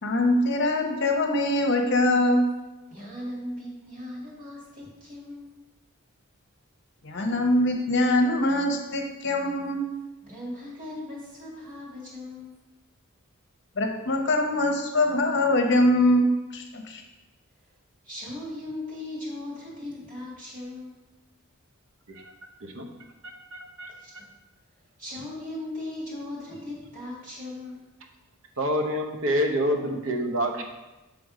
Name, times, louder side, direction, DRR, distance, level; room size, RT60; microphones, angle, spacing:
voice 1, 0.0-2.5 7.0-9.8 13.8-16.2 16.5-17.0, left 1 dB, 55° left, 3 dB, 0.8 m, -23 dB
voice 2, 2.9-5.5 10.2-12.6 18.0-21.0 24.0-24.1 25.0-27.8, left 1 dB, 35° right, -5 dB, 2.1 m, -38 dB
voice 3, 23.2-23.9 28.6-30.6, equal, 65° right, 2 dB, 0.9 m, -27 dB
7.8 x 3.4 x 4.9 m, 1.1 s
head